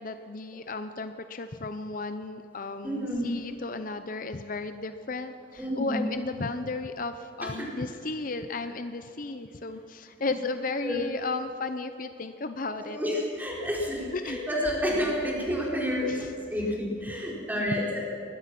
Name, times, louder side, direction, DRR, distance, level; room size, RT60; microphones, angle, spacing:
voice 1, 0.0-13.0 14.1-14.4 16.0-16.3 16.7-16.8 17.1-17.2 17.6-17.7, left 3 dB, 50° left, 9 dB, 0.7 m, -34 dB
voice 2, 2.8-3.3 5.6-6.0 7.4-7.5 10.2-10.3 10.8-11.0 12.8-18.0, equal, 10° right, -3 dB, 4.3 m, -30 dB
21.5 x 21.0 x 6.1 m, 2.6 s
head